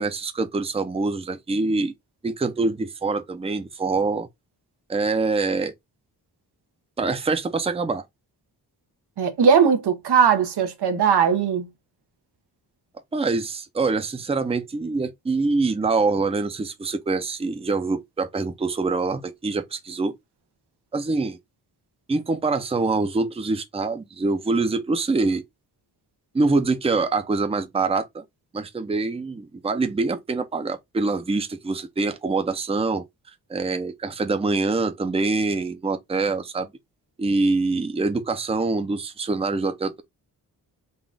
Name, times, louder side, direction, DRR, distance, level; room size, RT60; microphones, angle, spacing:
voice 1, 0.0-1.9 2.2-4.3 4.9-5.7 7.0-8.0 13.1-20.1 20.9-21.4 22.1-25.4 26.3-28.2 28.5-33.0 33.5-36.7 37.2-40.0, right 3 dB, 15° right, 0.6 m, -25 dB
voice 2, 9.2-11.7, right 6 dB, 85° right, 1.0 m, -19 dB
3.9 x 2.4 x 3.5 m
wide cardioid pair, 120°, 38 cm